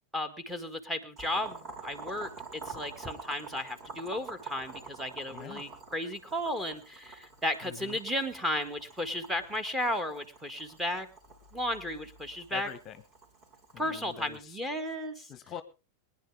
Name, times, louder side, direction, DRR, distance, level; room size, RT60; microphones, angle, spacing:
voice 1, 0.1-11.1 11.5-12.7 13.8-15.3, left 1 dB, 5° right, 7 dB, 1.8 m, -34 dB
Boiling, 1.2-14.4, right 4 dB, 30° right, 4.2 m, -47 dB
voice 2, 5.3-5.6 7.6-8.0 12.5-13.0 13.7-14.6 15.3-15.6, left 9 dB, 30° left, 12 dB, 1.0 m, -44 dB
23.0 x 10.0 x 3.5 m, 0.31 s
figure-of-eight pair, 90°, 0 cm